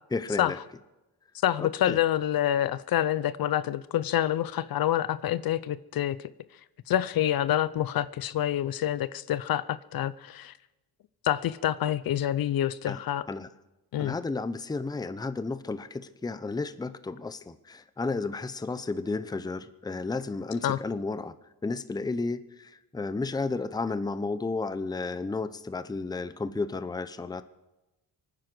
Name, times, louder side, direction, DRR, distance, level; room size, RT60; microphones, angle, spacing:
voice 1, 0.1-0.6 1.6-2.0 12.9-13.0 13.3-13.5 14.0-21.3 21.6-27.4, left 3 dB, 10° left, 0.6 m, -32 dB
voice 2, 1.4-6.2 6.9-10.5 11.2-13.3 13.9-14.1 20.6-20.8, left 12 dB, 60° left, 0.7 m, -27 dB
24.5 x 9.8 x 6.1 m
cardioid pair, 105°, 40 cm